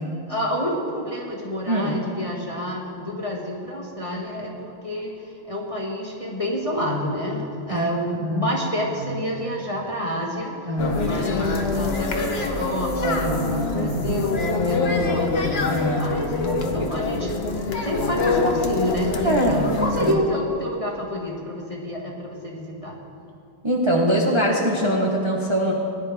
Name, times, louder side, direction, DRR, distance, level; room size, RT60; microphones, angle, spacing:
voice 1, 0.3-10.7 11.0-15.5 16.0-17.3 17.6-23.0, equal, 20° left, -2 dB, 1.1 m, -28 dB
voice 2, 8.2-8.5 9.0-9.2 10.7-11.2 13.0-14.2 15.7-16.9 19.2-20.2 23.6-25.7, equal, 20° right, -2 dB, 0.8 m, -24 dB
sound 1, 10.8-20.1, left 3 dB, 50° left, 0.8 m, -25 dB
19.0 x 10.5 x 3.5 m, 2.6 s
omnidirectional pair, 2.2 m